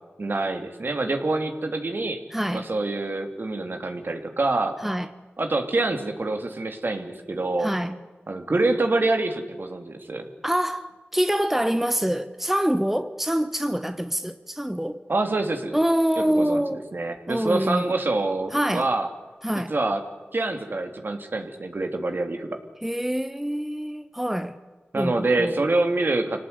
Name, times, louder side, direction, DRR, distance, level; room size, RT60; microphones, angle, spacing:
voice 1, 0.2-2.2 2.5-4.8 5.4-7.7 8.3-10.3 15.1-15.8 16.2-19.1 19.7-20.0 20.3-22.5 24.9-26.4, right 2 dB, 60° right, 3.0 m, -26 dB
voice 2, 2.3-2.7 4.8-5.1 7.6-8.0 10.4-15.0 15.7-16.9 17.3-17.9 18.5-18.9 19.4-19.7 22.8-24.6 25.0-25.6, equal, 5° right, 1.1 m, -25 dB
26.5 x 18.0 x 9.7 m
wide cardioid pair, 50°, 4 cm